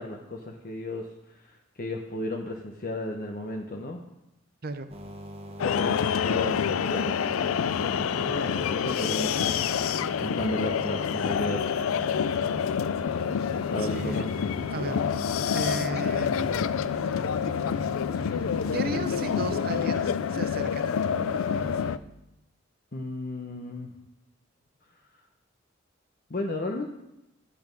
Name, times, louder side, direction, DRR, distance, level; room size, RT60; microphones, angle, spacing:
voice 1, 0.0-4.0 5.6-6.6 6.8-7.5 7.7-11.6 13.7-14.3 22.9-23.9 26.3-26.9, left 1 dB, 45° left, 1 dB, 0.8 m, -34 dB
sound 1, 4.9-21.9, right 1 dB, 30° right, 1.1 m, -41 dB
sound 2, 5.6-22.0, left 7 dB, 90° left, 0.4 m, -27 dB
voice 2, 13.8-14.3 14.7-15.2 15.5-16.7 18.7-21.1, right 2 dB, 45° right, 10 dB, 0.8 m, -35 dB
11.0 x 8.6 x 5.2 m, 0.90 s
head